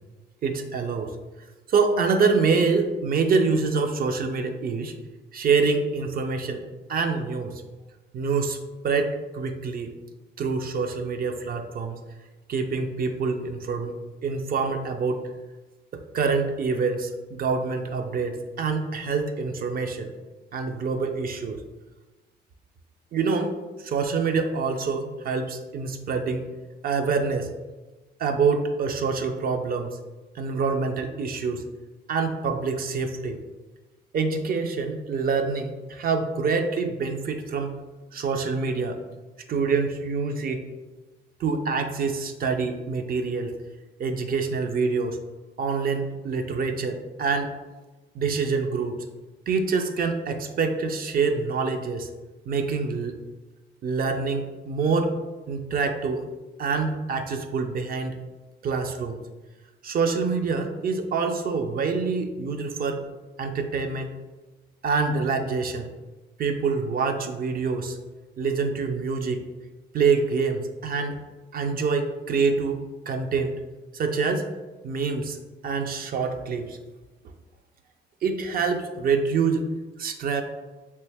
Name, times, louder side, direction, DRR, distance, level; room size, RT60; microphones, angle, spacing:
voice 1, 0.4-1.1 1.7-4.9 5.3-6.6 6.9-7.6 8.1-9.9 10.4-12.0 12.5-13.9 14.2-15.2 15.9-20.1 20.5-21.6 23.1-23.5 23.8-26.4 26.8-27.5 28.2-30.0 30.3-31.6 32.1-33.4 34.1-37.8 38.1-39.0 39.5-40.6 41.4-43.6 44.0-45.2 45.6-47.5 48.1-49.0 49.5-52.1 52.5-53.2 53.8-55.1 55.5-56.2 56.6-58.2 58.6-59.2 59.8-63.0 63.4-64.2 64.8-65.9 66.4-68.0 68.4-69.5 69.9-71.2 71.5-73.5 73.9-74.5 74.8-75.4 75.6-76.8 78.2-79.7 80.0-80.4, right 4 dB, 50° right, 6 dB, 0.4 m, -26 dB
3.2 x 2.7 x 3.3 m, 1.2 s
cardioid pair, 90°, 20 cm